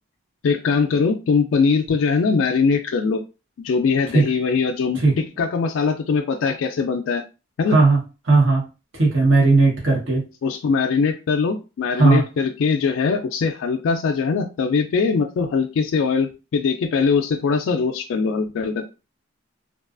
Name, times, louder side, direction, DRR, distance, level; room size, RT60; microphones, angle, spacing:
voice 1, 0.4-3.2 3.6-7.2 7.6-7.8 10.4-18.9, left 5 dB, 70° left, 4 dB, 0.3 m, -21 dB
voice 2, 8.3-8.6 9.0-10.2 12.0-12.2, right 3 dB, 70° right, -2 dB, 1.1 m, -16 dB
2.4 x 2.3 x 2.4 m, 0.30 s
head